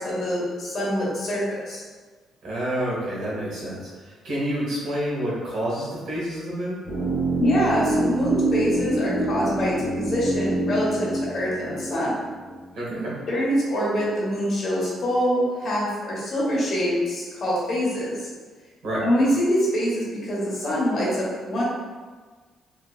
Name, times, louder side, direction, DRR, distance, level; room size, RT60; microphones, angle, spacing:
voice 1, 0.0-1.8 7.4-12.2 13.3-18.3 19.0-21.6, equal, 50° left, -6 dB, 1.1 m, -24 dB
voice 2, 2.4-6.8 12.7-13.1 18.8-19.0, right 1 dB, 75° right, -6 dB, 1.4 m, -28 dB
sound 1, 6.8-12.9 13.1-13.2, right 2 dB, 25° right, 1.0 m, -26 dB
3.2 x 2.6 x 2.4 m, 1.4 s
cardioid pair, 90°, 0 cm